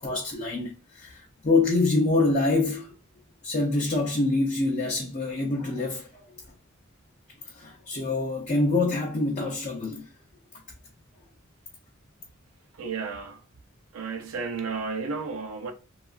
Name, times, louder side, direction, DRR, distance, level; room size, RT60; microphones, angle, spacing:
voice 1, 0.0-2.9 3.4-6.2 7.5-10.1, left 3 dB, 35° left, 0.5 m, -26 dB
voice 2, 12.8-13.4 13.9-15.7, right 4 dB, 90° right, 0.5 m, -32 dB
2.8 x 2.4 x 2.4 m
head